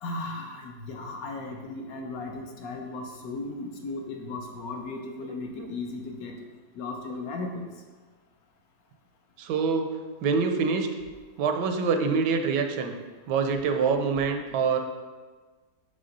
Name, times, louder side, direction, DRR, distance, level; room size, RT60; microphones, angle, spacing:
voice 1, 0.0-6.4 6.8-7.6, left 3 dB, 65° left, 2 dB, 1.0 m, -36 dB
voice 2, 9.4-9.9 10.2-10.9 11.4-12.9 13.3-14.8, right 5 dB, 85° right, 5 dB, 1.2 m, -25 dB
5.6 x 3.3 x 5.2 m, 1.4 s
omnidirectional pair, 1.8 m